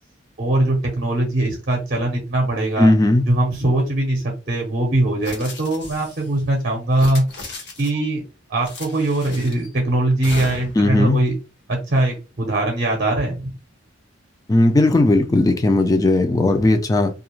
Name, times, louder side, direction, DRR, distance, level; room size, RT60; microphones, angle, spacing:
voice 1, 0.4-2.9 3.3-8.2 8.5-11.4 11.7-13.5, right 1 dB, 50° right, 0.6 m, -21 dB
voice 2, 2.8-3.2 10.8-11.2 14.5-17.1, left 2 dB, 20° left, 0.3 m, -16 dB
sound 1, 5.2-6.3 6.9-8.1 8.6-9.7 10.2-10.9, left 3 dB, 60° left, 0.7 m, -36 dB
2.4 x 2.1 x 2.9 m
head